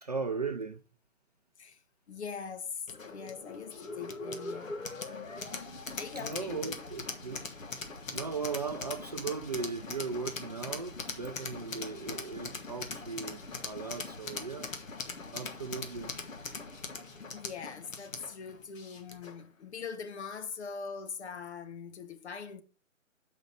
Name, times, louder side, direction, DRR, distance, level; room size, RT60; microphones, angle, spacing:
voice 1, 0.0-0.8 6.1-7.5 8.1-14.7 15.3-16.1, right 4 dB, 35° right, 0.4 m, -37 dB
voice 2, 1.6-4.9 5.9-6.7 17.3-22.6, left 6 dB, 55° left, 1.0 m, -42 dB
sound 1, 2.9-19.4, left 3 dB, 75° left, 1.4 m, -41 dB
7.0 x 5.2 x 4.0 m
figure-of-eight pair, 140°, 39 cm